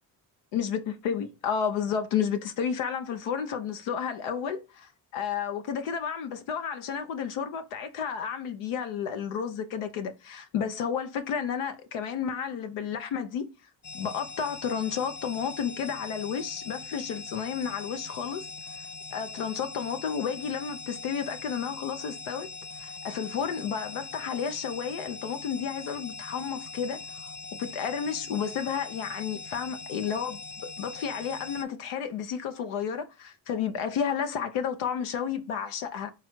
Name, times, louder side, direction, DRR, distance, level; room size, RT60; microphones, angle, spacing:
voice 1, 0.5-13.5 13.9-18.5 19.1-22.5 22.8-27.3 27.6-30.4 30.8-36.1, left 7 dB, 80° left, 0.7 m, -31 dB
sound 1, 13.8-31.6, left 4 dB, 25° left, 0.5 m, -42 dB
3.8 x 3.0 x 3.0 m
supercardioid pair, 60°, 50 cm